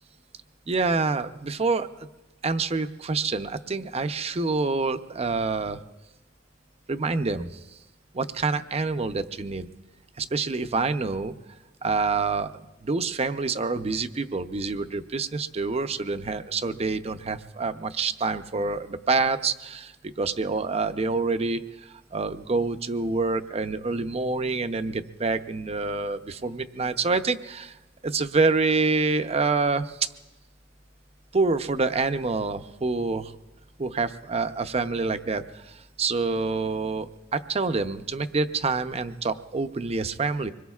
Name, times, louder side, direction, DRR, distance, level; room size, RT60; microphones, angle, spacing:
voice 1, 0.7-1.9 2.4-5.8 6.9-7.6 8.1-9.7 10.2-11.3 11.8-12.5 12.8-19.9 20.2-27.8 28.0-30.1 31.3-33.3 33.8-40.5, right 3 dB, 35° right, 10 dB, 0.6 m, -27 dB
25.0 x 21.5 x 2.4 m, 1.1 s
head